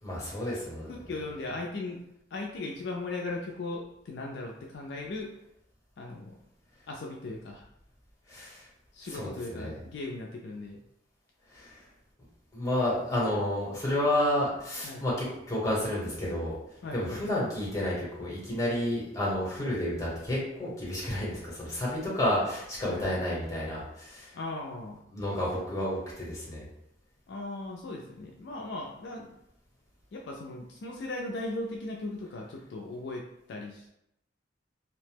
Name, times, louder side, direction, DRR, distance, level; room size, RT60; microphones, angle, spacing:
voice 1, 0.0-0.9 8.3-8.7 9.0-9.8 11.5-11.9 12.5-16.6 16.9-24.4 25.1-26.7, left 1 dB, 15° left, -5 dB, 0.9 m, -31 dB
voice 2, 0.9-2.0 2.3-5.3 6.0-6.3 6.9-7.7 8.9-10.8 14.8-15.0 16.8-17.2 19.6-19.7 22.9-23.0 24.3-25.0 25.7-25.8 27.3-29.3 30.1-33.9, left 2 dB, 60° left, 0 dB, 0.3 m, -38 dB
2.7 x 2.0 x 3.3 m, 0.79 s
head